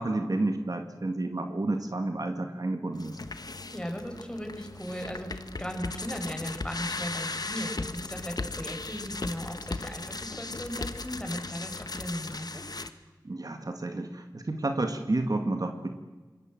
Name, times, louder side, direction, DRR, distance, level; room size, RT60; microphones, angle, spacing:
voice 1, 0.0-3.2 13.2-15.9, right 2 dB, 55° right, 6 dB, 2.2 m, -30 dB
sound 1, 2.9-12.9, left 3 dB, 60° left, 1.3 m, -37 dB
voice 2, 3.7-12.6, equal, 10° left, 3 dB, 6.3 m, -37 dB
25.5 x 21.5 x 7.9 m, 1.3 s
wide cardioid pair, 45°, 8 cm